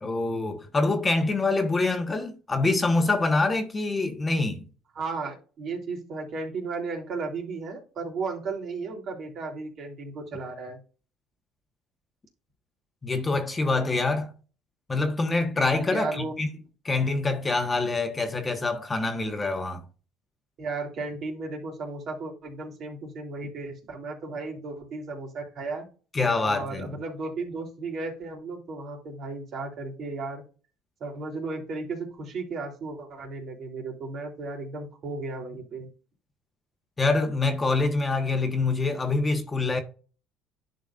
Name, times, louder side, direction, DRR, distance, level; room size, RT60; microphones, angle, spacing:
voice 1, 0.0-4.7 13.0-14.3 14.9-16.5 16.8-19.8 26.1-26.9 37.0-39.8, left 3 dB, 20° left, 1.3 m, -25 dB
voice 2, 4.9-10.8 15.9-16.3 20.6-25.9 26.4-30.4 31.0-35.9, right 3 dB, 50° right, 3.3 m, -35 dB
11.0 x 5.2 x 2.5 m
cardioid pair, 105°, 0 cm